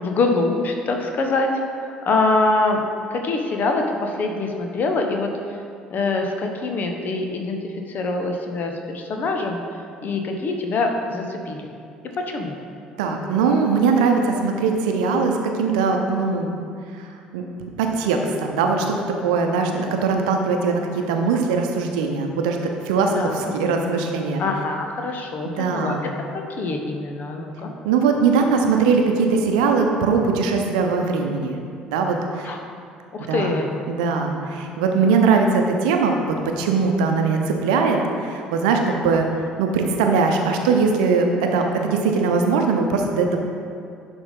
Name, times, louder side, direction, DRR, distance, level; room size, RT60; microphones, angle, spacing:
voice 1, 0.0-1.5 2.0-2.8 3.1-5.3 5.9-7.6 7.9-9.6 10.0-11.6 12.2-12.6 23.1-23.5 24.4-25.9 26.3-27.7 32.4-32.6 33.1-33.7, left 3 dB, 45° left, 3 dB, 1.0 m, -24 dB
voice 2, 13.0-16.5 17.3-17.4 17.8-19.0 19.2-22.6 22.9-24.4 25.4-26.0 27.8-31.6 31.9-32.5 33.2-33.5 33.9-36.2 36.6-39.3 39.6-43.4, right 4 dB, 65° right, 3 dB, 0.8 m, -20 dB
10.5 x 3.6 x 5.5 m, 2.4 s
figure-of-eight pair, 55°, 4 cm